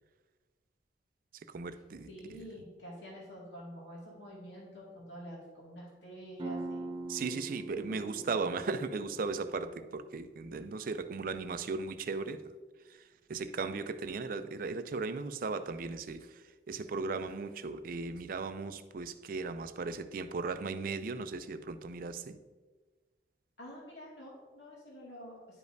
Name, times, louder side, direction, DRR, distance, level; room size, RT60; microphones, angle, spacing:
voice 1, 1.5-2.1 7.1-12.4 13.3-16.3 16.7-22.4, right 4 dB, 50° right, 11 dB, 0.4 m, -37 dB
voice 2, 2.1-6.8 7.2-7.3 7.8-8.0 23.6-25.6, equal, 80° left, -5 dB, 2.1 m, -48 dB
sound 1, 6.4-11.8, right 2 dB, 30° right, 0.8 m, -44 dB
10.5 x 5.1 x 2.7 m, 1.3 s
head